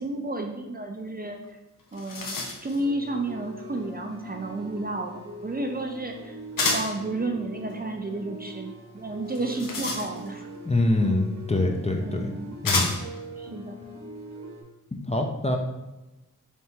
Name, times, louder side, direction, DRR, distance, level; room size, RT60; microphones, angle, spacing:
voice 1, 0.0-1.4 1.9-6.4 6.7-10.4 12.0-12.6 13.4-13.8, right 2 dB, 25° right, 3 dB, 0.5 m, -32 dB
sound 1, 1.4-1.5 1.8-2.8 6.6-7.0 9.3-10.5 11.6-11.7 12.6-13.2, left 3 dB, 70° left, 0.8 m, -29 dB
sound 2, 2.8-14.6, equal, 55° right, 1.0 m, -42 dB
voice 2, 10.6-12.3 12.6-12.9 14.9-15.6, left 2 dB, 20° left, 2 dB, 0.6 m, -24 dB
3.5 x 2.8 x 4.4 m, 1.0 s
cardioid pair, 50°, 34 cm